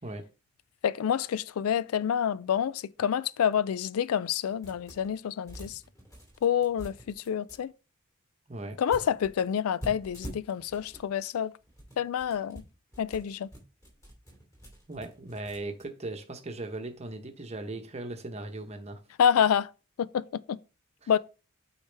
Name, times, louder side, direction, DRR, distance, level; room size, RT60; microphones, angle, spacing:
voice 1, 0.8-5.8 6.4-7.7 8.8-11.5 12.0-12.6 13.0-13.5 19.2-19.7 20.0-20.6 21.1-21.2, left 8 dB, 85° left, 0.3 m, -28 dB
sound 1, 4.6-5.2 5.5-7.6 8.9-11.1 11.6-15.8, right 1 dB, 15° left, 2.6 m, -46 dB
voice 2, 14.9-19.0 21.0-21.1, right 2 dB, 30° right, 0.9 m, -38 dB
8.5 x 4.7 x 3.4 m
head